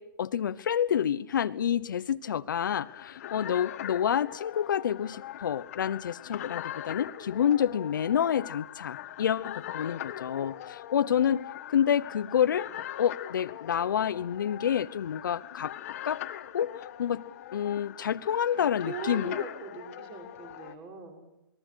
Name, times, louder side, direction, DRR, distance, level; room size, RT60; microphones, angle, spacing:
voice 1, 0.0-12.7 13.0-15.7 16.0-16.2 16.5-16.7 17.0-17.2 17.5-19.4, left 9 dB, 65° left, 14 dB, 0.9 m, -28 dB
sound 1, 2.7-20.7, left 12 dB, 40° left, 1.5 m, -42 dB
voice 2, 18.5-21.3, right 5 dB, 25° right, 3 dB, 6.5 m, -41 dB
27.5 x 20.5 x 6.4 m, 0.89 s
hypercardioid pair, 155°, 11 cm